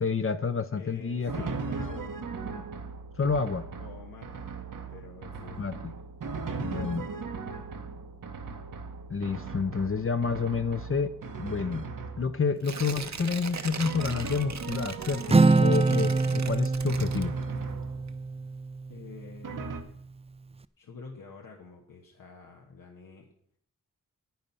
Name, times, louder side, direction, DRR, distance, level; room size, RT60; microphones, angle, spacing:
voice 1, 0.0-1.3 3.2-3.7 5.6-5.9 6.6-7.1 9.1-11.1 11.4-11.9 12.2-17.3, left 5 dB, 40° left, 9 dB, 0.6 m, -29 dB
voice 2, 0.7-2.1 3.8-4.5 4.9-5.6 6.4-7.7 18.9-20.0 20.8-23.3, left 5 dB, 90° left, 0 dB, 1.3 m, -47 dB
Drum, 1.3-12.6 13.8-15.8 16.9-18.4 19.4-19.8, right 4 dB, 75° right, 1.1 m, -38 dB
Tearing, 12.6-17.7 18.1-18.2, right 5 dB, 55° right, 0.9 m, -39 dB
Acoustic guitar, 15.3-19.0, right 3 dB, 20° right, 0.4 m, -24 dB
10.0 x 8.7 x 5.5 m, 0.64 s
wide cardioid pair, 80°, 32 cm